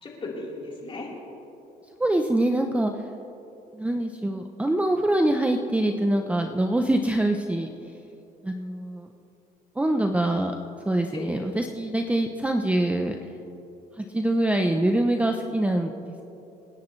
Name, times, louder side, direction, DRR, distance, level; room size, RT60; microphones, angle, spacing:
voice 1, 0.0-1.1 11.1-11.5, left 2 dB, 30° left, -4 dB, 3.9 m, -36 dB
voice 2, 1.9-2.9 3.7-8.0 8.4-9.1 9.8-10.5 10.9-13.2 14.0-16.1, right 1 dB, 10° right, 4 dB, 0.6 m, -24 dB
27.5 x 10.5 x 3.2 m, 3.0 s
cardioid pair, 110°, 17 cm